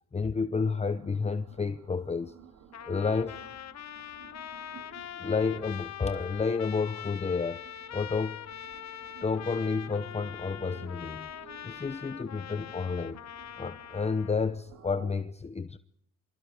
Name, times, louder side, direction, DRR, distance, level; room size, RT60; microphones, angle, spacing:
voice 1, 0.1-2.3 2.9-3.5 5.1-7.6 7.9-8.4 9.2-11.3 11.6-13.2 13.6-15.8, left 5 dB, 20° left, 0.8 m, -30 dB
sound 1, 0.5-15.2, right 7 dB, 75° right, 2.8 m, -55 dB
Trumpet, 2.7-14.3, left 10 dB, 60° left, 1.4 m, -43 dB
28.0 x 25.5 x 5.0 m
cardioid pair, 90°, 30 cm